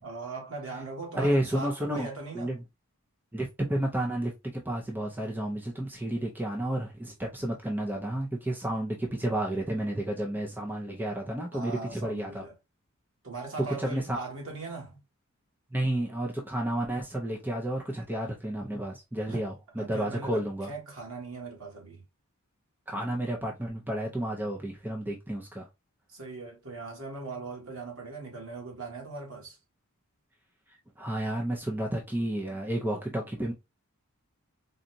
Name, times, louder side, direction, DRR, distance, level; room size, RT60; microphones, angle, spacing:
voice 1, 0.0-2.5 11.5-12.5 13.2-15.0 19.3-19.4 19.8-22.0 26.1-29.6, right 3 dB, 65° right, 1.6 m, -40 dB
voice 2, 1.1-2.1 2.3-2.6 3.3-12.4 13.8-14.2 15.7-20.7 22.9-25.7 30.7-33.5, right 1 dB, 10° right, 0.6 m, -31 dB
3.9 x 2.4 x 2.5 m
head